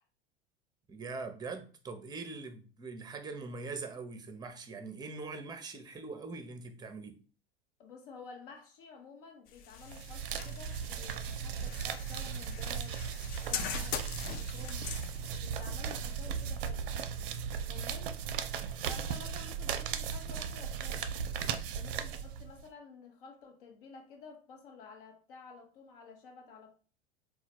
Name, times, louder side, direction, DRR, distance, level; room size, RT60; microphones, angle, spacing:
voice 1, 0.9-7.2, right 3 dB, 15° right, 0.7 m, -42 dB
voice 2, 7.8-13.0 13.4-14.9 15.2-16.9 17.7-18.2 18.9-21.1 21.7-26.8, left 4 dB, 60° left, 1.1 m, -51 dB
sound 1, 9.5-17.3, left 8 dB, 30° left, 0.4 m, -43 dB
sound 2, 9.8-22.7, right 7 dB, 60° right, 0.5 m, -37 dB
4.0 x 2.3 x 4.3 m
figure-of-eight pair, 80°, 30 cm